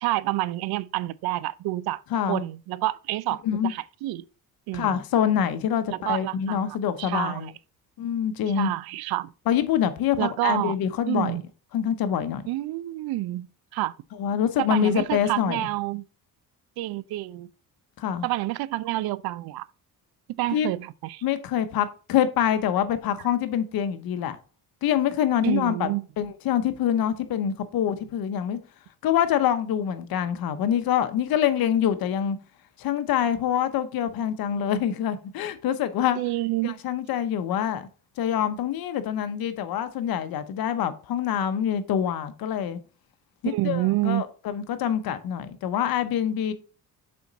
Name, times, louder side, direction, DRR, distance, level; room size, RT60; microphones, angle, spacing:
voice 1, 0.0-2.0 2.3-4.2 4.7-5.0 5.9-6.6 7.0-7.5 8.6-9.3 10.2-10.8 11.1-11.4 12.5-13.9 14.6-16.0 16.8-17.5 18.2-19.7 20.4-21.2 25.4-26.0 36.2-36.8 43.4-44.2, right 17 dB, 80° right, 0.5 m, -28 dB
voice 2, 2.1-2.4 3.4-3.7 4.7-7.5 8.0-8.7 9.5-11.4 11.7-12.4 14.2-15.6 18.0-18.3 20.5-20.7 21.2-24.4 24.8-25.9 26.2-28.6 29.0-32.4 32.8-36.2 36.6-37.9 38.2-42.8 43.4-46.5, left 9 dB, 75° left, 0.9 m, -25 dB
6.9 x 4.4 x 4.0 m
cardioid pair, 110°, 36 cm